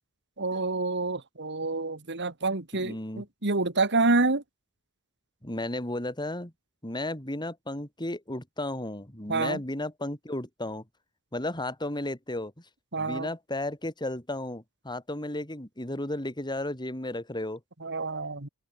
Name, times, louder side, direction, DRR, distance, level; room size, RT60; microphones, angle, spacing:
voice 1, 0.4-4.4 9.3-9.6 12.9-13.3 17.8-18.5, right 3 dB, 50° right, 2.7 m, -27 dB
voice 2, 2.7-3.2 5.4-6.5 6.8-10.8 11.3-12.5 13.0-17.6, left 1 dB, 20° left, 4.9 m, -34 dB
head